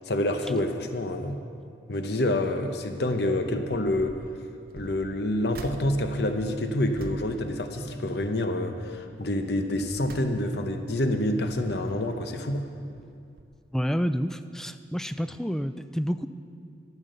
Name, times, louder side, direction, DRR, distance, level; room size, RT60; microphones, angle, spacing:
voice 1, 0.1-1.4 1.9-4.2 4.7-12.7, left 1 dB, 65° left, 6 dB, 0.7 m, -27 dB
sound 1, 3.8-4.3 4.7-8.4 8.7-9.1 9.6-10.8 11.3-12.3 13.0-13.1 13.4-13.5, right 1 dB, 55° right, 0.8 m, -45 dB
voice 2, 13.7-16.3, equal, 5° left, 10 dB, 0.3 m, -29 dB
12.5 x 8.3 x 6.6 m, 2.4 s
head